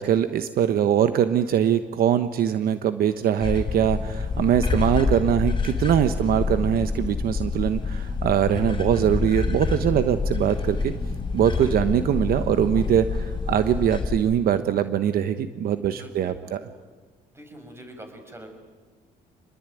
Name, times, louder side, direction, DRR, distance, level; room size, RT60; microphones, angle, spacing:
voice 1, 0.0-10.9 11.3-16.6, right 9 dB, 60° right, 10 dB, 1.1 m, -22 dB
sound 1, 3.4-14.2, left 4 dB, 30° left, 5.0 m, -27 dB
voice 2, 15.9-16.6 17.3-18.5, right 1 dB, 15° right, 6 dB, 5.7 m, -44 dB
26.5 x 21.0 x 9.3 m, 1.4 s
cardioid pair, 110°, 17 cm